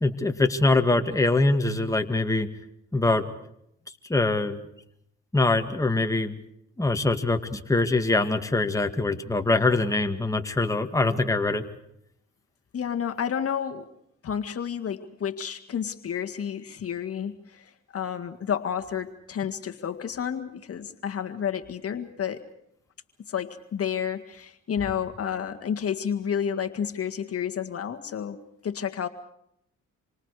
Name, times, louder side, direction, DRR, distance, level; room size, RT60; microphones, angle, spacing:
voice 1, 0.0-2.5 2.9-3.3 4.1-4.6 5.3-6.3 6.8-11.7, left 2 dB, 10° left, 5 dB, 2.1 m, -23 dB
voice 2, 12.7-13.9 14.2-22.4 23.3-29.1, left 8 dB, 50° left, 5 dB, 1.8 m, -30 dB
28.0 x 25.0 x 4.9 m, 0.74 s
cardioid pair, 90°, 30 cm